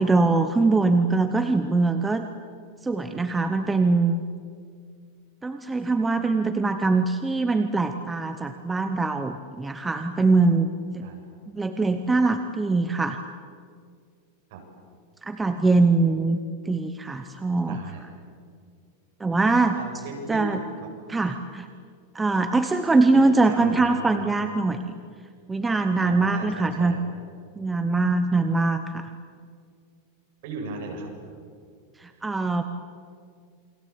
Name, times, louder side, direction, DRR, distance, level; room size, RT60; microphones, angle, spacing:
voice 1, 0.0-2.3 2.8-4.2 5.4-11.0 11.5-13.2 15.2-16.4 16.7-17.8 19.2-19.8 20.3-20.6 21.1-21.7 22.1-24.8 25.5-27.0 27.6-29.1 32.0-32.6, right 3 dB, 5° right, 7 dB, 0.9 m, -22 dB
voice 2, 17.7-18.1 19.8-20.5 23.4-24.2 26.0-27.0 30.4-31.1, right 3 dB, 50° right, 1 dB, 7.5 m, -36 dB
29.0 x 23.0 x 8.6 m, 2.2 s
supercardioid pair, 175°, 0 cm